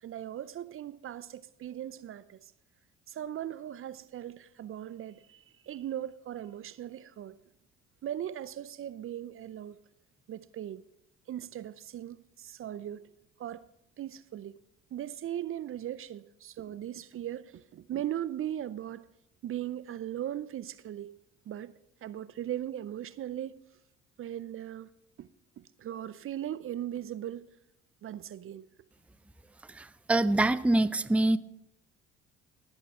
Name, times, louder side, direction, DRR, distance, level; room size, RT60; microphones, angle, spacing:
voice 1, 0.0-2.4 3.1-7.4 8.0-9.8 10.3-10.8 11.3-13.0 13.4-13.7 14.0-14.6 14.9-19.0 19.4-21.2 21.5-21.7 22.0-23.6 24.2-24.9 25.2-25.3 25.6-27.5 28.0-28.7, right 11 dB, 45° right, 0.6 m, -38 dB
voice 2, 29.8-31.4, right 2 dB, 5° right, 0.5 m, -25 dB
18.5 x 8.1 x 3.6 m
hypercardioid pair, 65°, 29 cm